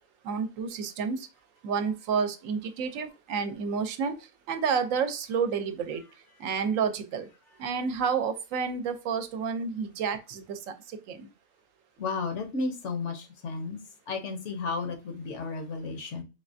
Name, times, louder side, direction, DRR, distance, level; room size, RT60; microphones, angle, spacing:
voice 1, 0.2-1.2 1.6-4.1 4.5-6.0 6.4-7.3 7.6-11.3, right 6 dB, 80° right, 9 dB, 1.0 m, -30 dB
voice 2, 12.0-13.8 14.1-16.2, left 4 dB, 65° left, 6 dB, 1.0 m, -33 dB
3.4 x 3.2 x 2.5 m, 0.30 s
omnidirectional pair, 1.4 m